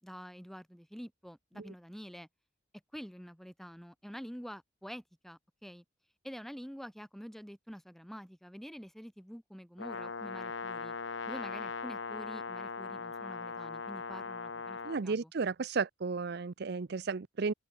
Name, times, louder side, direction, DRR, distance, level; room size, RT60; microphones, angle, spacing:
voice 1, 0.0-2.3 2.9-5.8 6.2-10.9 11.3-15.3, equal, ahead, 5.0 m, -47 dB
Brass instrument, 9.8-15.0, left 4 dB, 90° left, 1.3 m, -40 dB
voice 2, 14.8-17.5, right 4 dB, 60° right, 0.6 m, -33 dB
head